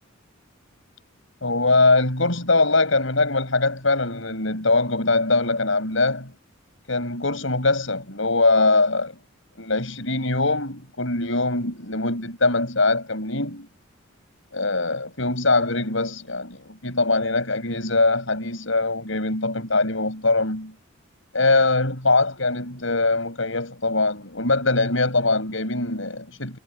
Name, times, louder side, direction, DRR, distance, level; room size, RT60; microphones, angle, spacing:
voice 1, 1.4-6.3 6.9-9.1 9.6-13.7 14.5-20.7 21.3-26.6, left 3 dB, 70° left, 6.4 m, -22 dB
head